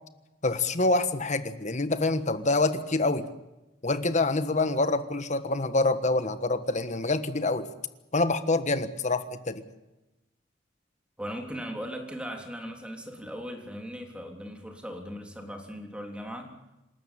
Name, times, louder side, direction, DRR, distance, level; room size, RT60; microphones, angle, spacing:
voice 1, 0.4-3.2 3.8-7.7 8.1-9.6, left 2 dB, 40° left, 11 dB, 1.4 m, -26 dB
voice 2, 11.2-16.5, equal, 5° right, 2 dB, 3.4 m, -38 dB
27.0 x 13.0 x 8.9 m, 1.0 s
head